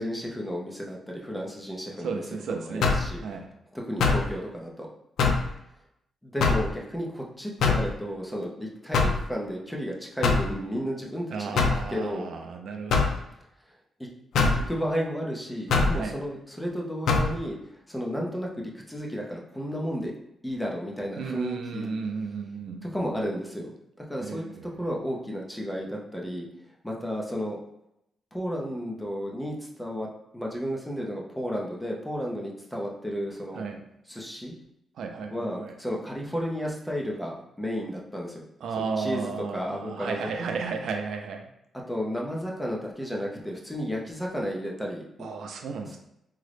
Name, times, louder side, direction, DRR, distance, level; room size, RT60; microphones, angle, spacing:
voice 1, 0.0-2.2 2.5-3.2 3.7-4.9 6.2-12.3 14.7-17.6 17.9-20.1 20.4-21.9 22.8-23.7 24.1-26.5 26.8-27.6 28.3-30.1 30.3-33.6 34.1-34.5 35.3-38.4 38.8-40.2 41.9-45.3, equal, 5° left, -2 dB, 0.4 m, -33 dB
voice 2, 2.0-3.0 3.2-3.5 11.3-13.2 15.9-16.2 21.2-22.9 24.2-24.7 33.5-33.8 35.0-35.7 38.6-41.5 45.2-46.0, right 5 dB, 65° right, 4 dB, 0.4 m, -34 dB
sound 1, 2.8-3.1 4.0-4.3 5.2-5.5 6.4-6.7 7.6-7.9 8.9-9.2 10.2-10.5 11.6-11.8 12.9-13.2 14.3-14.6 15.7-16.0 17.1-17.3, left 4 dB, 75° left, 0.4 m, -22 dB
3.6 x 2.0 x 3.2 m, 0.81 s
wide cardioid pair, 170°, 0 cm